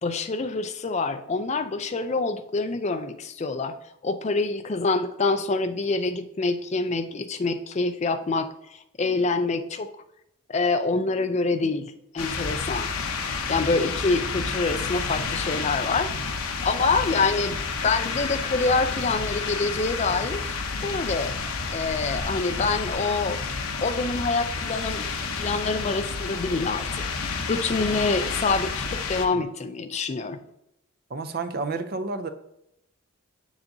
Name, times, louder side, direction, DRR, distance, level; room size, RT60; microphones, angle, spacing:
voice 1, 0.0-3.7 4.0-9.9 10.5-12.9 13.5-16.2 16.6-20.6 20.8-21.4 21.7-23.4 23.8-27.1 27.5-30.4, left 3 dB, 30° left, 0.3 m, -26 dB
sound 1, 12.2-29.3, left 4 dB, 85° left, 0.7 m, -30 dB
voice 2, 31.1-32.3, right 3 dB, 45° right, 0.5 m, -30 dB
7.0 x 6.5 x 2.6 m
head